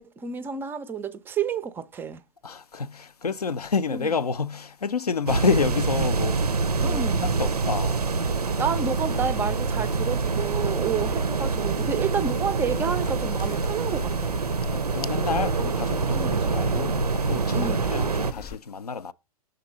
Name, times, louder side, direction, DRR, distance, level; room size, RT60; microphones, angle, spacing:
voice 1, 0.0-2.2 3.9-4.1 6.8-7.3 8.6-14.4 16.1-16.5 17.5-17.9, right 6 dB, 10° right, 0.4 m, -30 dB
voice 2, 2.4-7.0 7.4-8.0 14.7-19.1, left 5 dB, 85° left, 0.5 m, -29 dB
sound 1, 5.3-18.3, right 4 dB, 85° right, 0.5 m, -26 dB
sound 2, 6.0-18.6, left 7 dB, 30° left, 0.6 m, -40 dB
6.4 x 3.9 x 5.4 m
figure-of-eight pair, 110°, 19 cm